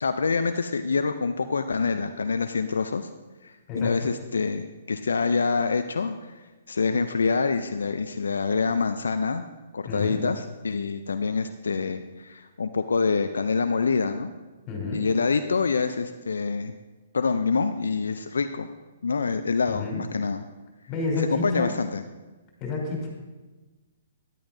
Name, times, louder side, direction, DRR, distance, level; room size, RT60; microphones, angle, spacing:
voice 1, 0.0-3.1 3.4-9.4 9.7-14.3 14.9-16.8 17.1-18.7 19.0-20.4 21.2-22.0, left 4 dB, 75° left, 9 dB, 0.4 m, -26 dB
voice 2, 3.7-4.1 9.9-10.2 14.7-15.1 19.7-20.0 20.9-21.7 22.6-23.1, left 3 dB, 30° left, -1 dB, 3.7 m, -30 dB
12.5 x 11.0 x 2.7 m, 1.2 s
hypercardioid pair, 125°, 0 cm